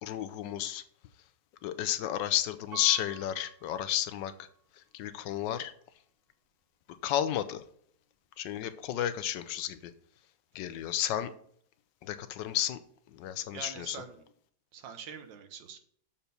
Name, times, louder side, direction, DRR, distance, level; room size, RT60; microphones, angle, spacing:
voice 1, 0.0-0.8 1.6-4.3 4.9-5.7 7.0-7.6 8.4-9.8 10.5-11.3 12.0-12.8 13.1-14.0, left 11 dB, 75° left, 11 dB, 1.2 m, -32 dB
Piano, 2.7-4.7 5.3-5.4, right 9 dB, 35° right, 0.7 m, -49 dB
voice 2, 13.5-14.2 14.7-15.8, right 7 dB, 75° right, 8 dB, 1.6 m, -44 dB
7.0 x 4.4 x 6.7 m, 0.62 s
omnidirectional pair, 2.1 m